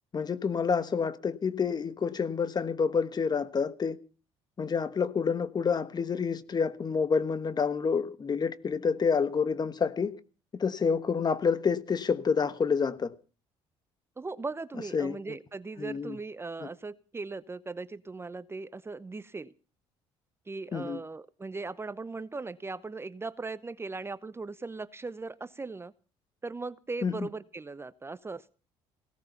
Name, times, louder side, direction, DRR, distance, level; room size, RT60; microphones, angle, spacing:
voice 1, 0.1-4.0 4.6-10.1 10.5-13.1 14.9-15.4 15.8-16.2 20.7-21.0 27.0-27.3, left 5 dB, 35° left, 1.3 m, -28 dB
voice 2, 14.2-19.5 20.5-25.9 26.4-28.6, right 3 dB, 20° right, 0.7 m, -38 dB
17.5 x 13.0 x 5.7 m
supercardioid pair, 80°, 12 cm